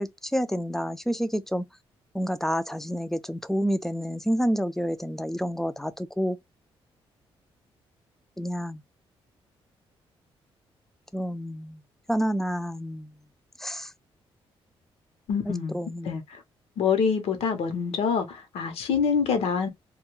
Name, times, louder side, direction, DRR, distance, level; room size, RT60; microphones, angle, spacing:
voice 1, 0.0-1.7 2.1-6.4 8.4-8.8 11.1-11.8 12.1-13.1 13.6-13.9 15.5-16.2, equal, 5° left, 0.3 m, -29 dB
voice 2, 15.3-15.8 16.0-16.4 16.8-19.7, left 6 dB, 75° left, 0.8 m, -26 dB
2.3 x 2.2 x 3.0 m
cardioid pair, 95°, 10 cm